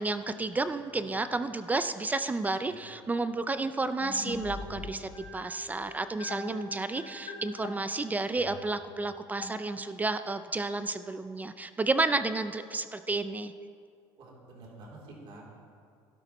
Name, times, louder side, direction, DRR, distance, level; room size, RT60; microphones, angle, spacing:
voice 1, 0.0-13.5, right 3 dB, 15° right, 11 dB, 0.4 m, -31 dB
voice 2, 2.6-3.0 14.2-15.6, right 2 dB, 60° right, -3 dB, 3.1 m, -49 dB
sound 1, 4.0-10.2, left 3 dB, 55° left, 1.6 m, -43 dB
12.5 x 12.0 x 3.0 m, 2.2 s
cardioid pair, 110°, 10 cm